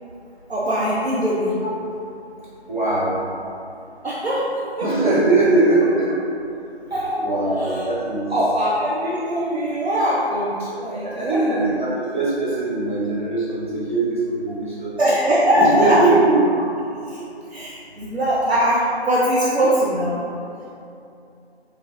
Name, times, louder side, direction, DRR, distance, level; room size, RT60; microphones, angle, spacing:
voice 1, 0.5-1.5 4.0-4.5 4.8-4.9 6.9-7.1 7.6-7.9 8.3-11.7 15.0-16.1 17.1-17.2 17.5-20.2, equal, 70° right, -8 dB, 0.6 m, -21 dB
voice 2, 2.7-3.2 4.8-6.1 7.1-8.3 11.0-15.0 15.6-16.6, right 2 dB, 45° right, -10 dB, 0.9 m, -20 dB
3.2 x 2.4 x 2.4 m, 2.6 s
figure-of-eight pair, 180°, 33 cm